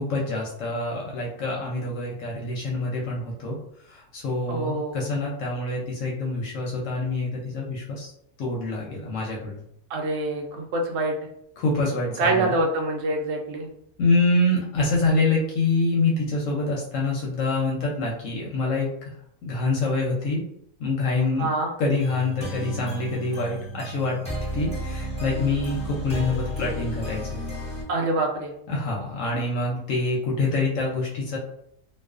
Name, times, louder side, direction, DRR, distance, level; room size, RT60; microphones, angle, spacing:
voice 1, 0.0-3.6 3.9-8.1 8.4-9.6 11.6-12.5 14.0-18.9 19.4-20.4 20.8-21.5 21.8-24.2 24.5-27.4 28.7-31.4, left 2 dB, 70° left, -2 dB, 0.8 m, -26 dB
voice 2, 4.5-5.2 9.9-11.1 12.2-13.7 21.4-21.7 27.9-28.5, right 2 dB, 65° right, 1 dB, 0.7 m, -25 dB
sound 1, 22.0-27.8, equal, 10° left, 0.5 m, -33 dB
2.3 x 2.3 x 2.3 m, 0.72 s
omnidirectional pair, 1.6 m